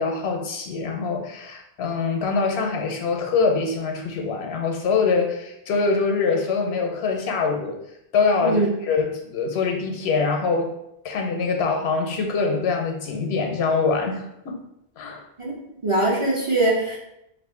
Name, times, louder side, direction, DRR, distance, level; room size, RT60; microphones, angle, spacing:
voice 1, 0.0-7.8 8.1-10.7 11.0-14.6 15.0-15.2, left 4 dB, 85° left, 3 dB, 0.8 m, -24 dB
voice 2, 15.8-17.0, right 2 dB, 40° right, -5 dB, 0.5 m, -21 dB
2.5 x 2.5 x 3.6 m, 0.81 s
omnidirectional pair, 1.1 m